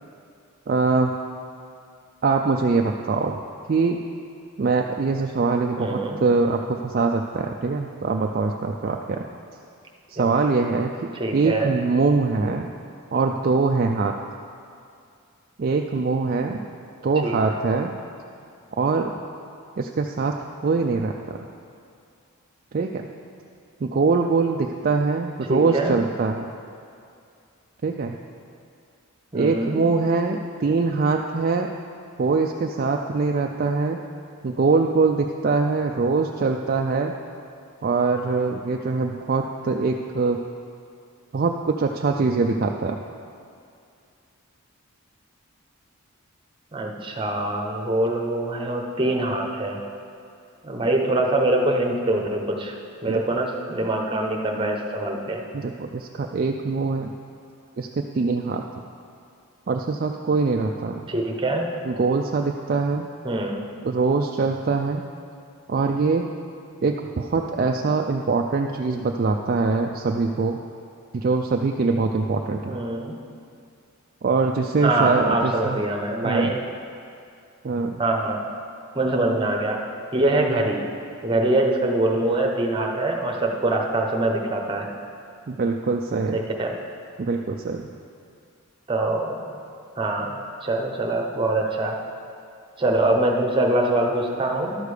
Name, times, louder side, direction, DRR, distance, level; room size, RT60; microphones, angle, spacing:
voice 1, 0.7-1.1 2.2-3.4 3.7-4.0 4.6-9.3 10.1-12.7 13.1-14.1 15.6-16.7 17.0-17.9 18.8-19.2 19.8-20.3 20.6-21.4 22.7-23.1 23.8-26.5 27.8-28.2 29.3-31.7 32.2-34.0 34.4-37.1 37.8-40.4 41.3-43.0 53.0-53.2 55.5-57.1 57.8-58.6 59.7-61.1 61.9-63.1 63.8-65.0 65.7-66.3 66.8-70.6 71.1-72.8 74.2-75.8 76.2-76.5 77.6-78.0 85.5-86.4 87.2-87.9, right 4 dB, 40° right, 2 dB, 0.3 m, -23 dB
voice 2, 5.8-6.2 10.2-10.3 11.1-11.7 17.2-17.4 25.4-26.0 29.3-29.8 46.7-49.8 50.6-52.7 53.0-55.4 61.1-61.7 63.2-63.6 72.7-73.2 74.8-76.6 78.0-78.4 78.9-79.8 80.1-80.8 81.2-84.9 86.3-86.7 88.9-89.5 90.0-92.0 92.8-94.8, right 2 dB, 20° right, 1 dB, 0.8 m, -24 dB
11.5 x 6.6 x 4.9 m, 2.4 s
head